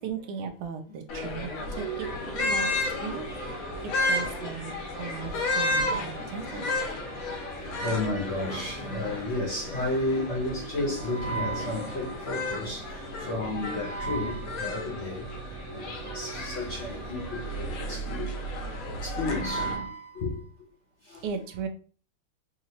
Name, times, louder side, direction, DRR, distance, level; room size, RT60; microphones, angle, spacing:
voice 1, 0.0-3.2 3.5-3.7 4.1-6.7 21.2-21.7, right 6 dB, 85° right, 1.5 m, -37 dB
sound 1, 1.1-19.7, left 2 dB, 80° left, 1.8 m, -33 dB
sound 2, 1.7-17.8, right 4 dB, 60° right, 1.7 m, -44 dB
voice 2, 7.8-12.8 13.2-15.2 15.7-15.8 16.1-18.3 19.0-20.3, left 1 dB, 45° left, 1.0 m, -31 dB
4.9 x 2.8 x 2.9 m
omnidirectional pair, 2.3 m